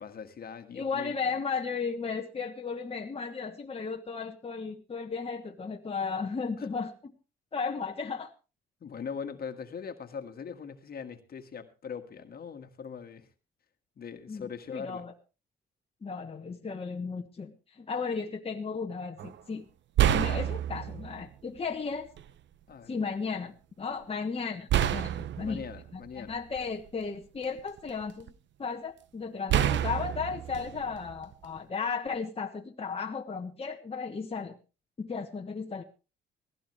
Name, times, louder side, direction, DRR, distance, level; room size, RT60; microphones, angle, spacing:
voice 1, 0.0-1.4 6.6-6.7 8.8-13.3 14.0-15.1 22.7-23.0 25.4-26.4, left 6 dB, 50° left, 7 dB, 1.7 m, -41 dB
voice 2, 0.7-7.1 7.5-8.3 14.3-15.1 16.0-19.6 20.1-22.1 22.9-25.6 26.2-28.3 28.6-34.5 35.0-35.8, left 5 dB, 30° left, 2 dB, 1.3 m, -35 dB
sound 1, 19.2-19.4 20.0-21.2 22.2-22.3 24.7-26.9 27.4-28.3 29.5-31.6, right 11 dB, 65° right, 0.8 m, -28 dB
17.0 x 16.0 x 3.2 m, 0.31 s
cardioid pair, 90°, 20 cm